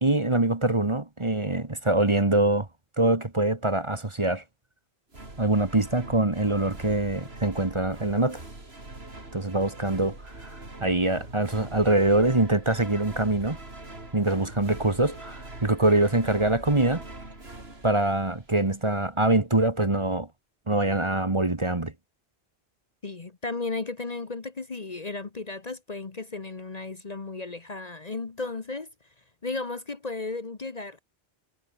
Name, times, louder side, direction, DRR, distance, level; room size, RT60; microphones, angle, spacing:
voice 1, 0.0-2.7 3.0-4.4 5.4-8.4 9.3-10.5 10.8-13.6 14.1-17.0 17.8-20.3 20.7-21.9, right 2 dB, 25° right, 1.6 m, -24 dB
sound 1, 5.1-18.8, right 2 dB, 65° right, 4.7 m, -43 dB
voice 2, 23.0-28.9 29.4-31.0, left 3 dB, 40° left, 1.3 m, -34 dB
omnidirectional pair, 1.1 m